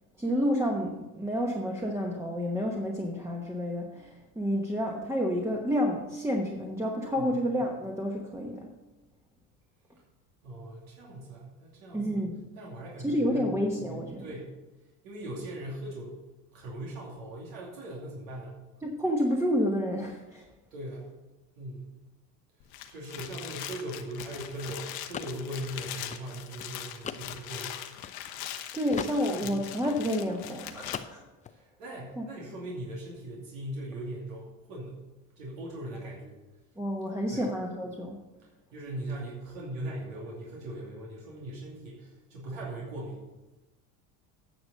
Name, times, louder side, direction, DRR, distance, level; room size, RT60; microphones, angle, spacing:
voice 1, 0.2-8.7 11.9-12.4 13.0-14.2 18.8-20.4 28.7-31.2 32.1-32.3 36.8-38.2, equal, 5° right, -1 dB, 1.1 m, -29 dB
voice 2, 10.4-12.3 12.6-13.5 13.9-14.5 15.0-16.1 16.5-18.6 20.7-21.1 21.6-21.8 22.9-27.8 29.4-29.5 31.5-35.0 35.4-36.4 37.3-37.4 38.7-43.2, right 1 dB, 90° right, -4 dB, 2.7 m, -40 dB
sound 1, 22.6-31.0, left 11 dB, 65° left, 1.2 m, -41 dB
sound 2, 23.3-28.6 28.9-30.6 30.8-31.5, left 7 dB, 20° left, 0.4 m, -42 dB
9.6 x 6.3 x 6.4 m, 1.1 s
supercardioid pair, 115°, 40 cm